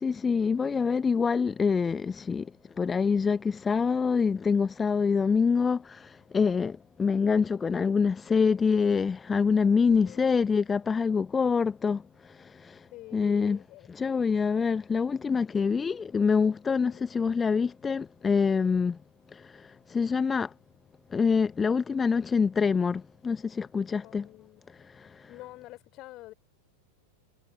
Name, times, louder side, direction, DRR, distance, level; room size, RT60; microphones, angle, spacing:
voice 1, 0.0-2.4 2.8-12.0 13.1-13.6 13.9-19.0 19.9-20.5 21.1-24.3, left 5 dB, 15° left, 0.9 m, -25 dB
voice 2, 10.0-10.7 12.9-13.9 16.8-17.1 24.0-24.6 25.3-26.3, left 18 dB, 40° left, 4.2 m, -48 dB
figure-of-eight pair, 90°, 0 cm